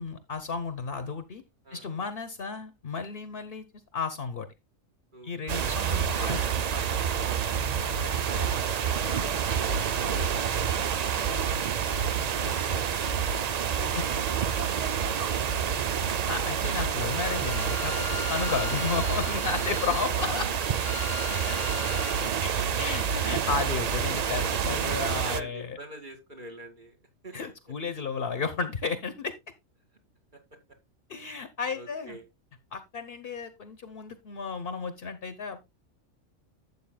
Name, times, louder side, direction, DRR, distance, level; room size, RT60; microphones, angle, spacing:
voice 1, 0.0-1.4 1.7-3.6 3.9-4.5 5.2-6.4 13.9-14.0 16.3-20.4 21.4-21.6 22.4-25.8 27.3-29.3 31.1-32.2 32.7-35.6, left 5 dB, 50° left, 10 dB, 1.0 m, -33 dB
voice 2, 5.1-5.5 6.1-7.6 8.0-9.4 13.7-15.9 19.5-20.2 23.4-23.5 25.0-27.0 27.2-27.4 31.7-32.3, right 1 dB, 35° right, 4 dB, 2.3 m, -46 dB
sound 1, 5.5-25.4, right 7 dB, 65° right, 0.4 m, -28 dB
Bowed string instrument, 16.9-22.3, left 10 dB, 80° left, 1.0 m, -40 dB
12.5 x 8.1 x 2.2 m, 0.22 s
omnidirectional pair, 1.4 m